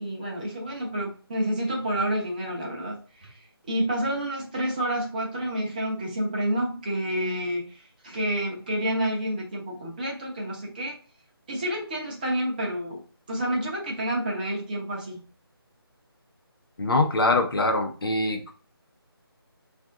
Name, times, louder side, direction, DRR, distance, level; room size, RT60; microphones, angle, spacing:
voice 1, 0.0-3.4 3.7-10.9 11.5-13.0 13.3-15.2, right 1 dB, 20° right, -2 dB, 0.7 m, -29 dB
voice 2, 16.8-18.6, left 2 dB, 65° left, 4 dB, 0.8 m, -23 dB
3.5 x 2.5 x 3.7 m, 0.39 s
figure-of-eight pair, 160°, 13 cm